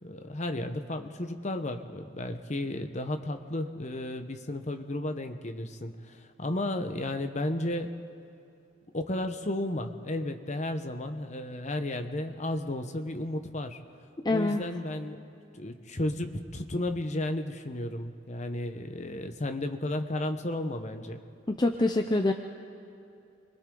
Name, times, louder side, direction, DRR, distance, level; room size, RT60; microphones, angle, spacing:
voice 1, 0.0-7.9 8.9-13.8 14.3-15.2 15.5-21.2, left 1 dB, 40° left, 7 dB, 1.0 m, -33 dB
voice 2, 14.2-14.6 21.5-22.3, left 2 dB, 20° left, 4 dB, 0.7 m, -25 dB
29.5 x 22.5 x 3.9 m, 2.7 s
head